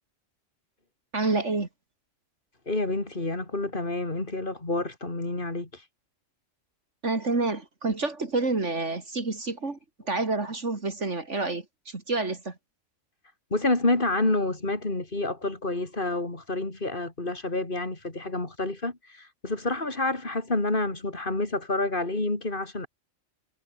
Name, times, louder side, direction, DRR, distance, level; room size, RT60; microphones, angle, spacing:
voice 1, 1.1-1.7 7.0-9.8 10.1-12.5, right 3 dB, 65° right, 3.3 m, -28 dB
voice 2, 2.7-5.8 13.5-22.9, left 2 dB, 40° left, 3.9 m, -28 dB
omnidirectional pair, 1.3 m